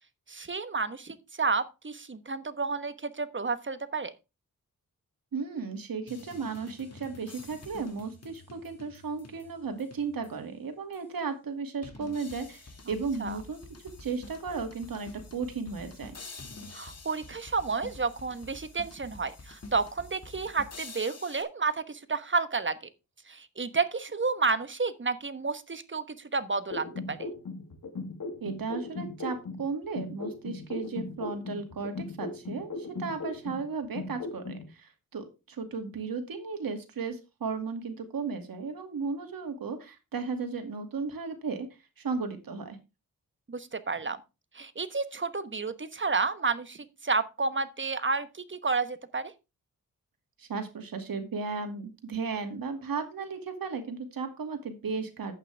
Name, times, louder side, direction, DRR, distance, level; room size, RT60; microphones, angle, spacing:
voice 1, 0.3-4.1 13.2-13.4 16.7-22.8 23.3-27.3 43.5-44.2 44.5-49.3, right 4 dB, 35° right, 12 dB, 1.2 m, -31 dB
voice 2, 5.3-13.6 14.0-16.1 28.4-32.7 33.0-41.7 42.0-42.8 50.4-55.3, right 4 dB, 80° right, 6 dB, 2.3 m, -35 dB
sound 1, 6.1-10.5 10.9-11.0 11.8-21.4, left 3 dB, 45° left, 2.2 m, -48 dB
sound 2, 26.7-29.6 30.0-33.6 34.0-34.6, left 3 dB, 70° left, 2.6 m, -37 dB
11.0 x 8.8 x 3.4 m, 0.27 s
cardioid pair, 65°, 34 cm